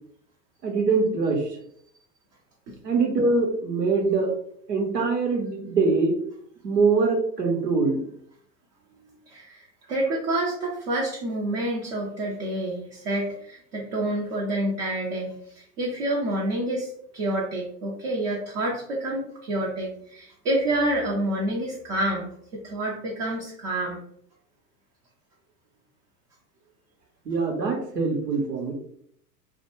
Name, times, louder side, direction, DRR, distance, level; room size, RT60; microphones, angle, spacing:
voice 1, 0.6-1.6 2.8-4.3 4.7-6.2 6.6-8.0 27.2-28.7, right 4 dB, 80° right, 1 dB, 0.9 m, -23 dB
voice 2, 9.3-22.3 22.6-24.0, right 1 dB, 30° right, -3 dB, 0.5 m, -28 dB
2.1 x 2.1 x 3.0 m, 0.66 s
figure-of-eight pair, 95°, 48 cm